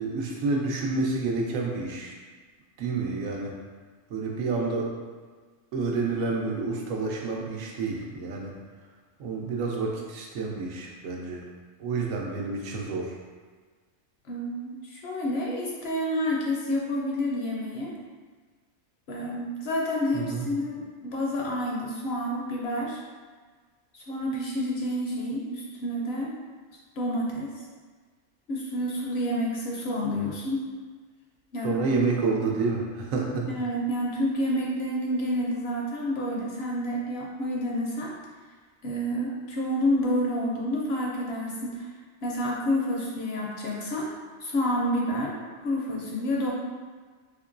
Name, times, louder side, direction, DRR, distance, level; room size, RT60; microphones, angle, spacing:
voice 1, 0.0-2.1 2.8-3.5 4.1-4.9 5.7-8.5 9.2-11.4 11.8-13.2 20.1-20.5 31.6-33.5, right 3 dB, 85° right, -1 dB, 1.0 m, -29 dB
voice 2, 14.3-17.9 19.1-23.0 23.9-26.3 27.0-27.5 28.5-30.6 31.5-31.8 33.5-38.1 38.8-41.9 42.2-44.1 44.4-46.5, equal, 65° left, -3 dB, 0.7 m, -29 dB
3.6 x 2.9 x 2.5 m, 1.5 s
omnidirectional pair, 1.4 m